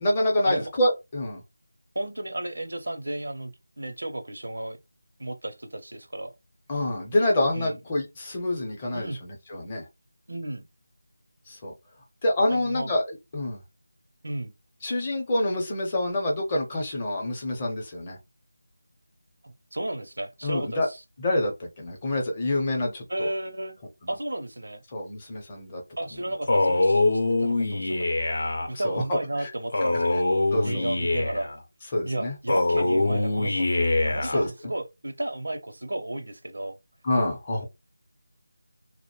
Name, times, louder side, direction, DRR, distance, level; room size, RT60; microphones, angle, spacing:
voice 1, 0.0-1.4 6.7-9.8 11.5-11.7 12.2-13.0 13.3-13.6 14.8-18.2 20.4-20.9 21.2-23.3 24.9-25.8 28.7-29.2 30.5-30.8 31.9-32.3 34.2-34.5 37.0-37.7, left 1 dB, 20° left, 0.7 m, -27 dB
voice 2, 1.9-4.8 5.2-6.3 7.5-7.8 8.9-9.2 10.3-10.6 12.5-12.9 14.2-14.5 19.4-21.0 23.1-23.8 24.1-24.8 26.0-27.0 27.4-28.3 28.7-30.2 30.6-31.5 32.1-36.8, right 1 dB, 80° right, 0.6 m, -33 dB
Male speech man speaking, 26.5-28.7 29.7-31.5 32.5-34.5, left 2 dB, 55° left, 0.7 m, -24 dB
2.4 x 2.1 x 2.9 m
figure-of-eight pair, 170°, 0 cm